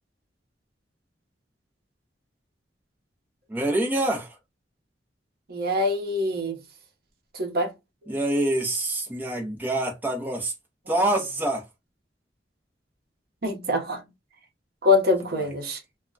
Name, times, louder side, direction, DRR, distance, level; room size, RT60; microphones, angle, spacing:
voice 1, 3.5-4.4 8.1-10.5 10.9-11.7 15.4-15.5, right 1 dB, 10° right, 0.6 m, -26 dB
voice 2, 5.5-6.6 7.3-7.7 13.4-14.0 14.8-15.8, left 2 dB, 60° right, 0.8 m, -24 dB
2.2 x 2.1 x 3.7 m
head